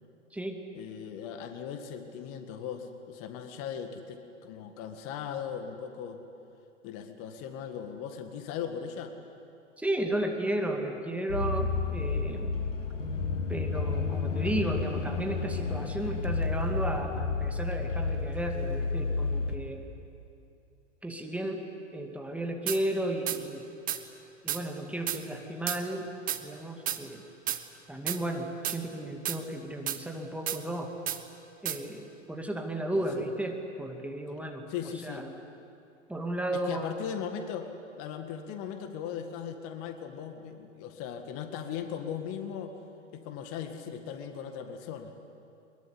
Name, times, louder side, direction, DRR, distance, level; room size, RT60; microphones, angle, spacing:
voice 1, 0.7-6.2 6.8-9.1 32.9-33.2 34.7-35.3 36.5-37.7 38.0-42.7 43.1-45.1, left 8 dB, 35° left, 6 dB, 2.0 m, -38 dB
voice 2, 9.8-12.6 13.5-19.9 21.0-21.6 21.9-23.8 24.4-26.0 26.4-27.2 27.9-30.9 31.6-34.7 35.0-35.3 36.1-36.9, right 1 dB, 5° right, 2 dB, 2.2 m, -34 dB
sound 1, 11.3-19.6, left 4 dB, 75° left, 2.2 m, -31 dB
sound 2, 22.7-22.8 23.3-23.4 23.9-24.0 24.5-24.6 25.1-25.2 25.7-25.8 26.3-26.4 26.9-27.0 27.5-27.6 28.1-28.2 28.6-28.8 29.2-29.4 29.9-30.0 30.5-30.6 31.1-31.2 31.6-31.8, right 11 dB, 20° right, 1.3 m, -31 dB
23.0 x 22.0 x 9.9 m, 2.7 s
figure-of-eight pair, 105°, 37 cm